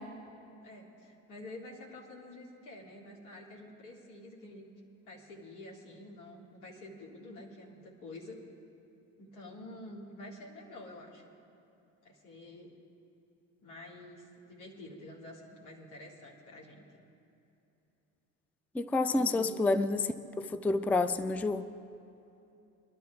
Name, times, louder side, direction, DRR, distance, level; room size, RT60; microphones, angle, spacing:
voice 1, 0.6-4.7 5.0-8.4 9.2-11.3 12.0-12.7 13.6-17.0 19.1-19.6, left 1 dB, 85° left, -3 dB, 2.4 m, -48 dB
voice 2, 18.7-20.0 20.4-21.7, left 3 dB, 5° left, 12 dB, 0.3 m, -29 dB
22.0 x 12.0 x 3.5 m, 2.9 s
hypercardioid pair, 65°, 44 cm